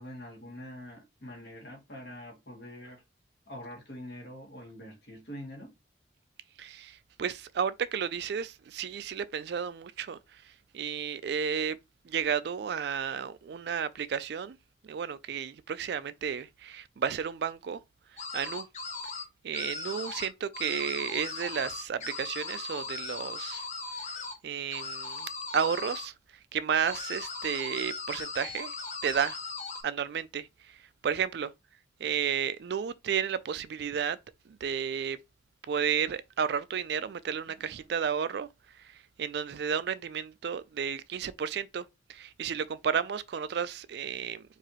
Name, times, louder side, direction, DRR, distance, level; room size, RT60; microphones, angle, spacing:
voice 1, 0.0-3.0 3.5-5.7, left 1 dB, 60° left, 1.8 m, -44 dB
voice 2, 6.6-10.2 10.7-11.8 12.1-14.6 14.8-17.8 18.3-18.7 19.4-23.6 24.4-26.1 26.5-28.7 29.0-29.4 29.8-30.5 31.0-31.5 32.0-34.2 34.5-35.2 35.7-38.5 39.2-41.8 42.1-44.4, right 7 dB, 60° right, 0.3 m, -32 dB
sound 1, 18.2-19.2 19.5-20.3 20.5-24.3 24.7-26.1 26.9-29.8, left 4 dB, 40° left, 0.8 m, -38 dB
4.8 x 2.7 x 2.9 m
head